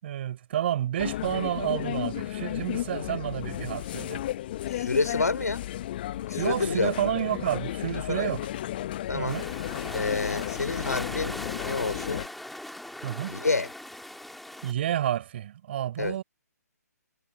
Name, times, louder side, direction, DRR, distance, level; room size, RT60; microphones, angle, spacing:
voice 1, 0.0-4.2 6.4-8.5 9.1-9.5 13.0-13.3 14.6-16.2, right 11 dB, 40° right, 7.3 m, -30 dB
sound 1, 1.0-12.3, left 13 dB, 35° left, 1.1 m, -34 dB
voice 2, 4.7-5.6 6.2-6.9 7.9-8.3 9.1-9.4 9.9-11.4 11.6-12.3 13.3-13.7 16.0-16.2, left 3 dB, 70° left, 5.5 m, -28 dB
sound 2, 9.3-14.7, left 1 dB, ahead, 3.2 m, -39 dB
figure-of-eight pair, 130°, 9 cm